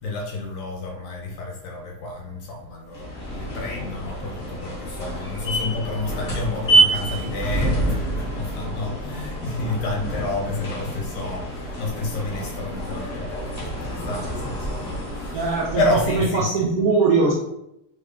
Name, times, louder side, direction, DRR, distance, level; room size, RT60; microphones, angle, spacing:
voice 1, 0.0-16.6, left 2 dB, 70° left, 0 dB, 1.3 m, -30 dB
sound 1, 2.9-16.4, right 2 dB, 30° left, 0.8 m, -27 dB
voice 2, 15.3-17.3, right 4 dB, 85° right, -4 dB, 0.7 m, -21 dB
3.6 x 2.2 x 3.5 m, 0.83 s
omnidirectional pair, 2.3 m